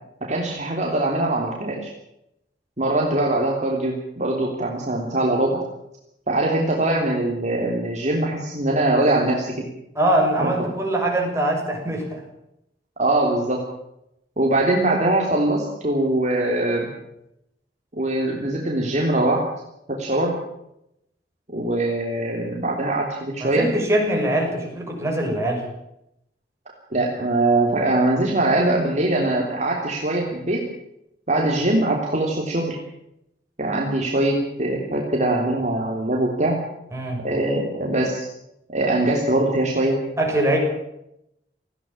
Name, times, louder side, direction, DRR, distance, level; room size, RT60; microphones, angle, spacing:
voice 1, 0.2-1.9 2.8-5.6 6.3-9.7 10.4-10.5 13.0-13.6 14.4-16.9 18.0-19.5 19.9-20.4 21.5-23.7 26.9-30.7 31.3-32.8 33.6-36.6 37.2-38.3 38.7-40.0, right 2 dB, 40° right, -1 dB, 3.3 m, -22 dB
voice 2, 9.9-12.2 23.4-25.6 36.9-37.2 40.2-40.6, right 1 dB, 15° right, -1 dB, 6.7 m, -22 dB
19.0 x 15.5 x 9.0 m, 0.81 s
head